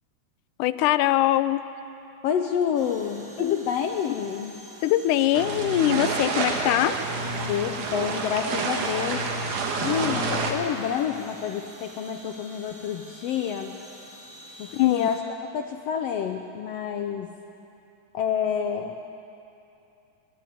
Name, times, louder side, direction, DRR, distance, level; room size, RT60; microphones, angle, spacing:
voice 1, 0.6-1.6 3.4-3.6 4.8-7.0 14.7-15.1, left 13 dB, 90° left, 13 dB, 2.2 m, -22 dB
voice 2, 2.2-4.6 7.5-9.2 9.8-13.8 14.6-15.2 15.5-17.3 18.1-19.0, left 8 dB, 75° left, 5 dB, 1.5 m, -28 dB
sound 1, 2.7-15.2, right 1 dB, 30° right, 2.8 m, -47 dB
sound 2, 5.3-10.5, right 3 dB, 75° right, 3.0 m, -28 dB
23.0 x 12.0 x 9.3 m, 2.8 s
omnidirectional pair, 3.5 m